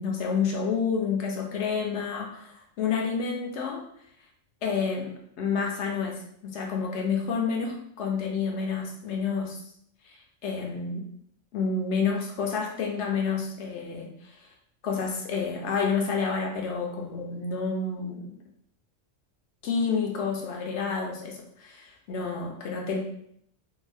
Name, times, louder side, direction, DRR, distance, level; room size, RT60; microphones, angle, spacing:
voice 1, 0.0-3.8 4.6-9.6 10.0-11.1 11.5-14.5 14.8-18.3 19.6-23.0, left 5 dB, 70° left, 1 dB, 0.8 m, -29 dB
2.6 x 2.3 x 3.2 m, 0.69 s
omnidirectional pair, 1.3 m